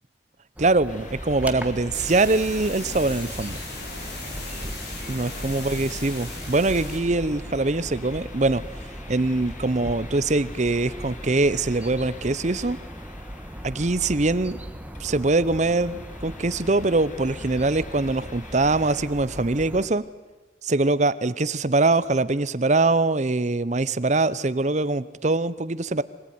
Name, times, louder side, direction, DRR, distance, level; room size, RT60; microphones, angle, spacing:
sound 1, 0.6-19.9, equal, 10° right, 1.4 m, -38 dB
voice 1, 0.6-3.6 5.1-8.6 9.1-12.8 13.6-14.6 15.0-20.0 20.6-26.0, right 2 dB, 40° right, 16 dB, 0.8 m, -23 dB
sound 2, 0.9-19.1, left 5 dB, 40° left, 1.7 m, -48 dB
sound 3, 1.9-7.0, left 2 dB, 60° left, 5.3 m, -37 dB
25.0 x 18.5 x 9.5 m, 1.3 s
head